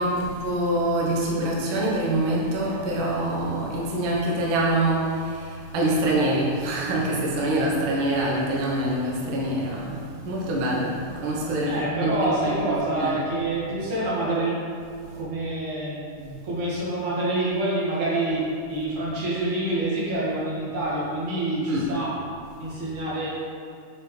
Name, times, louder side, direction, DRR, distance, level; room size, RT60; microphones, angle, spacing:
voice 1, 0.0-10.0 10.2-13.1 21.7-21.9, right 1 dB, 80° right, -3 dB, 1.1 m, -25 dB
voice 2, 11.6-14.5 15.1-22.1 22.6-23.3, right 2 dB, 60° right, -8 dB, 3.2 m, -27 dB
7.5 x 6.2 x 3.2 m, 2.3 s
omnidirectional pair, 3.9 m